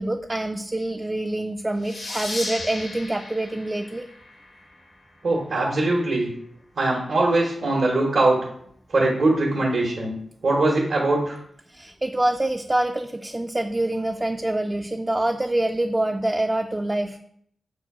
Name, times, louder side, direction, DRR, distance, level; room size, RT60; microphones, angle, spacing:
voice 1, 0.0-4.1 11.7-17.2, right 1 dB, 25° right, 4 dB, 0.3 m, -26 dB
sound 1, 1.8-5.1, left 2 dB, 75° left, 0.9 m, -36 dB
voice 2, 5.2-6.3 6.8-8.4 8.9-10.1 10.4-11.4, right 2 dB, 70° right, -4 dB, 0.9 m, -21 dB
4.7 x 2.3 x 4.6 m, 0.67 s
cardioid pair, 40°, 0 cm